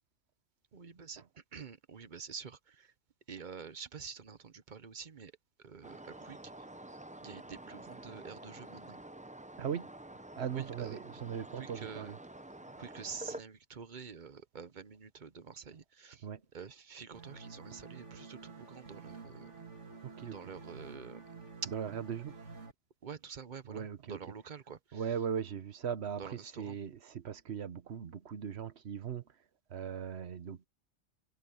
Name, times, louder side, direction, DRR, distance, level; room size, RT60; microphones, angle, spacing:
voice 1, 0.7-2.9 3.3-5.3 5.6-6.4 7.2-9.0 10.5-11.0 11.5-12.1 12.8-16.3 16.5-19.5 20.2-21.3 21.6-21.7 23.0-25.1 26.2-26.8, right 6 dB, 45° right, 1.0 m, -47 dB
sound 1, 5.8-13.4, right 1 dB, 10° right, 0.5 m, -48 dB
voice 2, 9.6-9.9 10.4-12.2 16.2-16.4 20.0-20.4 21.7-22.3 23.7-24.2 24.9-26.2 26.6-29.2 29.7-30.7, right 8 dB, 65° right, 1.3 m, -38 dB
sound 2, 17.1-22.7, right 4 dB, 80° right, 2.5 m, -50 dB
omnidirectional pair, 1.2 m